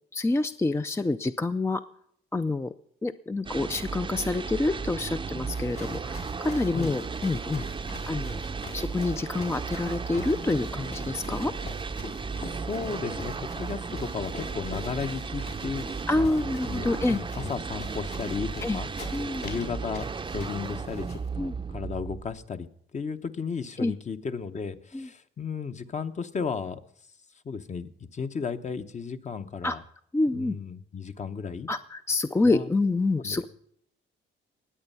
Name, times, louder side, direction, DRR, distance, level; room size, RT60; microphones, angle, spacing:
voice 1, 0.1-1.8 2.3-2.7 3.0-7.6 8.1-8.4 8.7-11.5 16.1-17.2 18.6-18.8 19.1-19.4 21.4-21.5 23.8-23.9 24.9-25.1 29.6-29.8 30.1-30.6 31.7-33.5, left 2 dB, 15° left, 10 dB, 0.5 m, -27 dB
sound 1, 3.5-22.5, right 5 dB, 25° right, 0.6 m, -35 dB
sound 2, 5.3-21.3, left 4 dB, 55° left, 4.3 m, -45 dB
voice 2, 12.7-15.9 16.2-16.4 16.6-18.9 19.4-22.7 22.9-26.8 27.4-29.8 30.3-31.7 32.4-32.7 33.2-33.5, left 5 dB, 35° left, 9 dB, 1.0 m, -34 dB
20.0 x 8.1 x 5.6 m, 0.68 s
cardioid pair, 90°, 20 cm